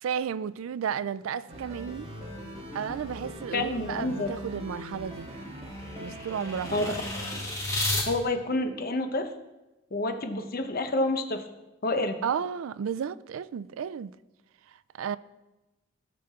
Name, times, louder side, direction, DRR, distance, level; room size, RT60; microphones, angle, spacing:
voice 1, 0.0-2.1 2.7-5.3 6.0-6.9 12.2-14.1 15.0-15.2, right 7 dB, 85° right, 0.3 m, -33 dB
sound 1, 1.5-7.5, equal, 30° right, 1.7 m, -41 dB
voice 2, 3.5-4.3 6.7-7.0 8.0-9.3 9.9-11.4 11.8-12.2, left 2 dB, 50° left, 0.9 m, -28 dB
sound 2, 4.4-8.1, left 2 dB, 15° left, 1.6 m, -34 dB
16.5 x 6.1 x 3.6 m
head